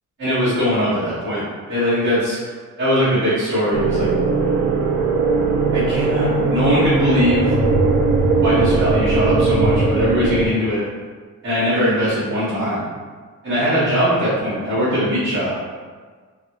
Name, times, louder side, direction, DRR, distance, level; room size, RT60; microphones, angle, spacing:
voice 1, 0.2-2.4 2.8-4.1 5.7-7.5 8.4-10.8 11.4-12.9 13.4-15.5, equal, 40° right, -13 dB, 1.2 m, -20 dB
sound 1, 3.7-10.5, right 3 dB, 90° right, 0.5 m, -18 dB
2.5 x 2.4 x 2.9 m, 1.5 s
cardioid pair, 165°, 29 cm